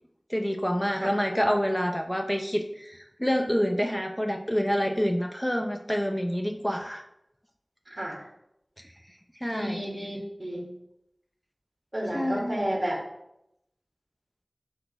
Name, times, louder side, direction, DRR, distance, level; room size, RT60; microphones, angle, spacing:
voice 1, 0.3-7.0 9.4-9.8 12.1-12.6, equal, 10° left, 3 dB, 0.6 m, -27 dB
voice 2, 7.9-8.2 9.5-10.7 11.9-13.0, right 1 dB, 40° right, -5 dB, 1.9 m, -31 dB
12.5 x 6.6 x 2.2 m, 0.83 s
wide cardioid pair, 45°, 0 cm